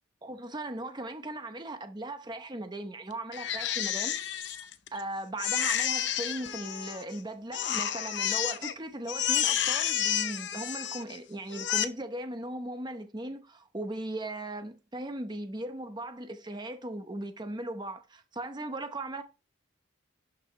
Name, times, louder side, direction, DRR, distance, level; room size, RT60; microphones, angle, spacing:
voice 1, 0.2-4.2 4.4-4.7 4.9-19.2, right 1 dB, 20° right, 0.8 m, -38 dB
Crying sobbing, 3.3-5.0 5.4-7.2 7.5-8.7 9.1-11.2 11.5-11.8, left 10 dB, 60° left, 0.7 m, -30 dB
11.5 x 4.9 x 3.2 m
head